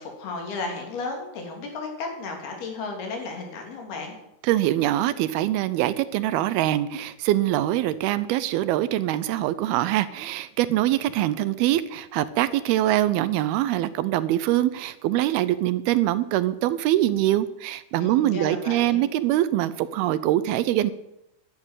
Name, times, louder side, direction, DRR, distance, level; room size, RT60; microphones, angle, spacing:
voice 1, 0.0-4.2 18.0-19.0, left 3 dB, 70° left, 2 dB, 4.9 m, -34 dB
voice 2, 4.4-20.9, right 14 dB, 80° right, 15 dB, 2.5 m, -23 dB
11.5 x 11.0 x 9.1 m, 0.85 s
omnidirectional pair, 4.6 m